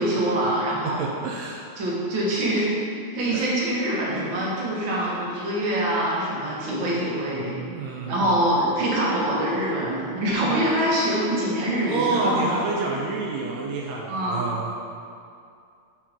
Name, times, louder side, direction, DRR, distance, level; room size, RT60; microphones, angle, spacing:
voice 1, 0.0-1.0 1.8-2.7 3.1-7.5 8.1-12.7 14.1-14.5, right 1 dB, 50° right, -6 dB, 1.6 m, -24 dB
voice 2, 0.8-1.7 3.3-3.5 7.7-8.4 11.8-14.7, right 3 dB, 90° right, -1 dB, 1.5 m, -29 dB
6.5 x 3.8 x 5.8 m, 2.4 s
omnidirectional pair, 3.8 m